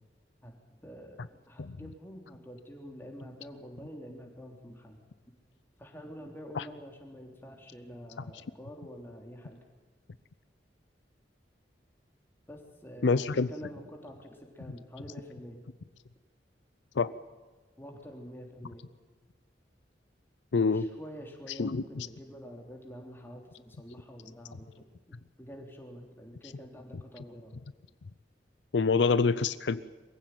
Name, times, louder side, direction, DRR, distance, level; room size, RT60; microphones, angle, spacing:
voice 1, 0.8-5.0 5.8-9.6 12.5-15.6 17.8-18.9 20.7-24.8 25.4-27.5, equal, 15° left, 1 dB, 3.4 m, -47 dB
voice 2, 13.0-13.5 17.0-17.1 20.5-20.9 21.5-22.1 26.4-26.5 28.7-29.8, left 4 dB, 75° left, 15 dB, 0.6 m, -26 dB
23.0 x 15.5 x 9.3 m, 1.3 s
head